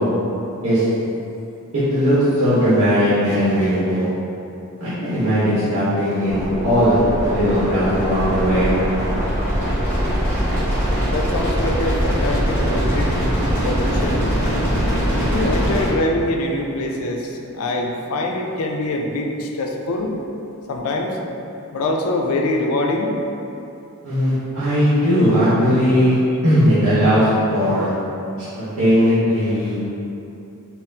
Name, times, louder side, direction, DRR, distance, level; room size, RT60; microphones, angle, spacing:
voice 1, 1.9-4.0 4.8-8.7 24.0-26.2 26.4-27.9 28.4-29.8, equal, 70° right, -13 dB, 0.9 m, -18 dB
sound 1, 6.3-15.9, equal, 10° left, 1.0 m, -21 dB
voice 2, 11.1-13.1 13.6-14.4 15.1-20.2 20.7-21.2 21.7-23.2, left 2 dB, 70° left, 2 dB, 0.4 m, -24 dB
4.0 x 2.0 x 2.7 m, 2.8 s
head